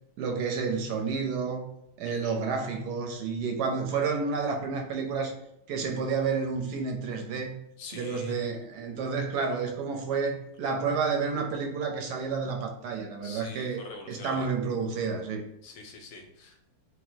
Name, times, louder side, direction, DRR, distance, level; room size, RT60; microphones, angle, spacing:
voice 1, 0.2-1.7 2.0-5.3 5.7-7.6 7.9-13.8 14.1-15.4, right 5 dB, 70° right, 3 dB, 1.1 m, -30 dB
voice 2, 2.1-2.4 7.8-8.4 13.2-14.5 15.6-16.6, left 3 dB, 80° left, 2 dB, 1.5 m, -45 dB
4.4 x 2.2 x 4.3 m, 0.77 s
omnidirectional pair, 2.0 m